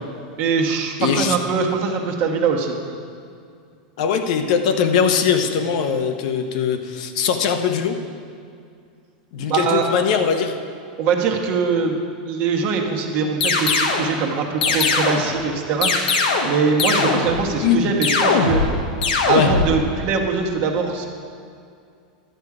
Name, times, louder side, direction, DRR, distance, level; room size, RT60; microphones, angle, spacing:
voice 1, 0.4-2.7 9.4-9.9 11.0-12.0 12.3-18.6 19.3-21.1, right 5 dB, 40° right, 2 dB, 1.2 m, -22 dB
voice 2, 1.0-1.4 4.0-8.0 9.3-10.5 17.0-17.2 17.6-17.9 19.3-19.5, left 7 dB, 55° left, 7 dB, 0.8 m, -21 dB
sound 1, 13.4-14.1 14.6-15.3 15.8-16.5 16.8-17.4 18.0-18.7 19.0-19.7, left 4 dB, 90° left, 1.4 m, -20 dB
11.5 x 8.1 x 4.9 m, 2.3 s
supercardioid pair, 155°, 5 cm